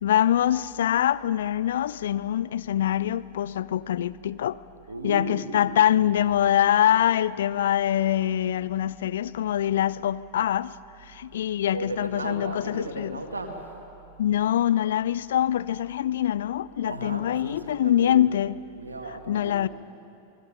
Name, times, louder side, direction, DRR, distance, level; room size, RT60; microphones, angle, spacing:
voice 1, 0.0-4.6 5.0-10.7 11.0-13.2 14.2-18.5 19.3-19.7, left 11 dB, 60° left, 0.5 m, -24 dB
voice 2, 4.9-6.2 11.7-13.8 16.8-18.3 18.8-19.7, right 2 dB, 75° right, 2.1 m, -36 dB
27.5 x 20.5 x 5.5 m
figure-of-eight pair, 90°, 0 cm